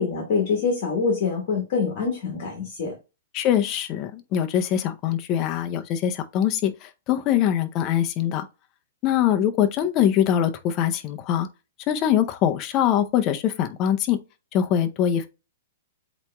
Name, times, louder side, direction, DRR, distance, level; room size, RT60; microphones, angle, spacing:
voice 1, 0.0-2.9, left 5 dB, 50° left, 1.4 m, -25 dB
voice 2, 3.3-8.5 9.0-11.5 11.9-14.2 14.5-15.3, left 10 dB, 30° left, 0.5 m, -23 dB
8.0 x 2.9 x 2.2 m
hypercardioid pair, 155°, 0 cm